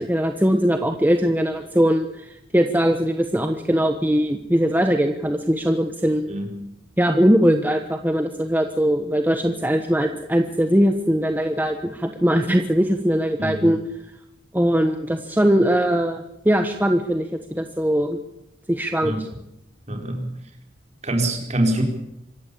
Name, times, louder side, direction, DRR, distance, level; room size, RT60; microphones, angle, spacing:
voice 1, 0.0-6.2 7.0-13.8 14.5-18.2 18.7-19.1, equal, 10° right, 6 dB, 1.2 m, -20 dB
voice 2, 19.9-20.3 21.0-21.8, right 1 dB, 35° right, 3 dB, 4.6 m, -24 dB
25.5 x 14.5 x 8.6 m, 0.84 s
head